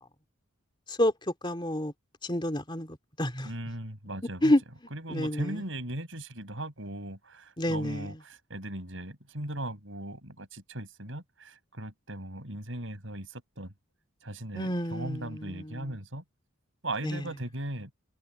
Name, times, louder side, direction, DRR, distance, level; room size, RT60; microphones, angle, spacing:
voice 1, 1.4-1.9 2.2-3.5 4.4-4.6 5.1-5.6 7.6-8.1 14.5-15.9 17.0-17.3, left 1 dB, 20° left, 3.0 m, -29 dB
voice 2, 3.4-4.5 4.9-13.7 14.2-16.2 16.8-17.9, right 1 dB, 65° right, 7.1 m, -38 dB
head